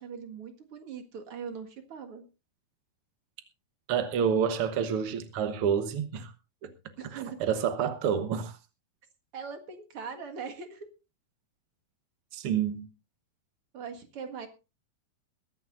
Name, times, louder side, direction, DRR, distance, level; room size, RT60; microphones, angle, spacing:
voice 1, 0.0-2.2 7.0-7.5 9.3-10.9 13.7-14.5, right 6 dB, 45° right, 2.2 m, -41 dB
voice 2, 3.9-6.3 6.6-6.7 7.1-8.6 12.3-12.9, right 7 dB, 75° right, 1.3 m, -28 dB
22.0 x 13.0 x 2.6 m
omnidirectional pair, 4.2 m